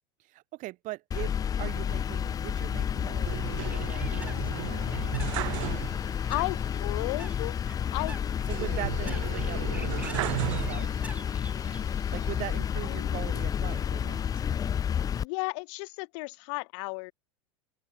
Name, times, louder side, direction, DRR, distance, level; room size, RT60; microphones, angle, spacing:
voice 1, 0.3-5.1 8.5-10.9 12.1-14.4, right 19 dB, 50° right, 4.6 m, -41 dB
sound 1, 1.1-15.2, left 8 dB, 20° left, 0.5 m, -31 dB
sound 2, 3.3-6.3 6.6-6.7 8.5-11.2 11.8-12.6, right 20 dB, 70° right, 1.6 m, -35 dB
Bird, 3.5-12.3, right 2 dB, 10° right, 2.2 m, -49 dB
voice 2, 6.3-7.6 7.9-8.2 9.0-9.2 12.8-13.2 15.2-17.1, left 34 dB, 60° left, 1.3 m, -34 dB
open air
hypercardioid pair, 110°, 17 cm